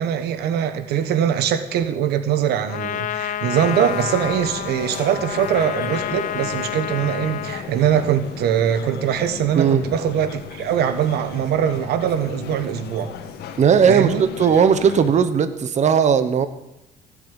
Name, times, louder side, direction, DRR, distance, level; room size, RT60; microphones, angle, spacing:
voice 1, 0.0-13.1 13.9-14.3, right 9 dB, 75° right, 1.1 m, -22 dB
Trumpet, 2.7-7.7, left 11 dB, 50° left, 0.5 m, -29 dB
sound 1, 3.5-15.1, left 7 dB, 75° left, 1.7 m, -36 dB
voice 2, 9.6-9.9 13.6-16.5, right 7 dB, 45° right, 1.2 m, -17 dB
16.5 x 7.5 x 8.2 m
cardioid pair, 110°, 17 cm